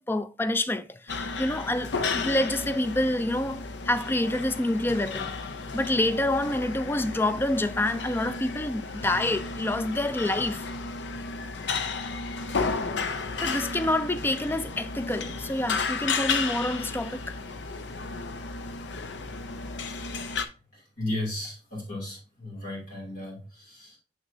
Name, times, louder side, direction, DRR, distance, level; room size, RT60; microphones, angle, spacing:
voice 1, 0.0-5.3 5.7-10.7 13.4-17.4, left 1 dB, 15° left, 0.4 m, -27 dB
sound 1, 1.1-20.5, left 4 dB, 85° left, 0.6 m, -33 dB
voice 2, 20.7-24.0, left 1 dB, 50° left, 2.8 m, -35 dB
6.3 x 6.2 x 2.7 m
head